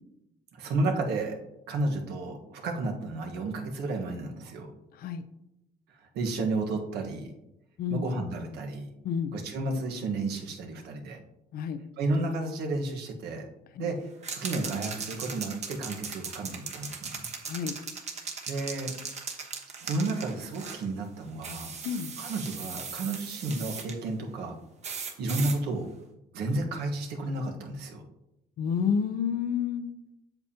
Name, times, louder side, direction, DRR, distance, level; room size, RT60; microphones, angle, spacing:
voice 1, 0.5-1.4 1.7-4.7 6.0-7.3 7.9-8.9 9.3-11.2 12.0-13.5 13.8-17.3 18.5-18.9 19.8-21.7 22.2-24.5 25.2-25.9 26.3-28.0, right 2 dB, 75° right, 2 dB, 1.3 m, -32 dB
sound 1, 14.2-20.8 21.4-23.9 24.8-25.6, right 5 dB, 40° right, 1.2 m, -38 dB
voice 2, 17.5-17.8 21.8-22.1 28.6-30.0, left 7 dB, 60° left, 10 dB, 0.6 m, -29 dB
7.9 x 7.1 x 2.8 m, 0.89 s
cardioid pair, 110°, 17 cm